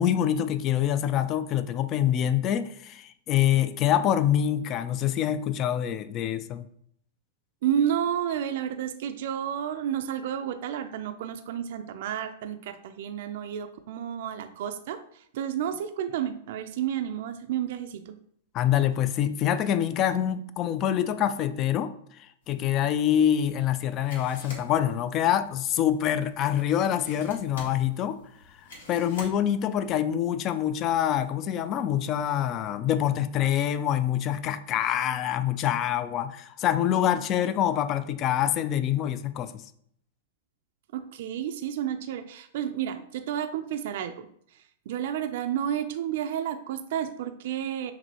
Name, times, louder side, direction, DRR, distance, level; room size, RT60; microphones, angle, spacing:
voice 1, 0.0-6.7 18.5-21.9 22.5-28.2 28.9-39.6, left 10 dB, 35° left, 12 dB, 0.3 m, -25 dB
voice 2, 7.6-18.1 40.9-44.3 44.5-47.9, right 9 dB, 65° right, 8 dB, 0.4 m, -31 dB
sound 1, 22.4-29.9, left 2 dB, 80° left, 1.7 m, -49 dB
6.0 x 2.6 x 2.9 m, 0.67 s
hypercardioid pair, 140°, 0 cm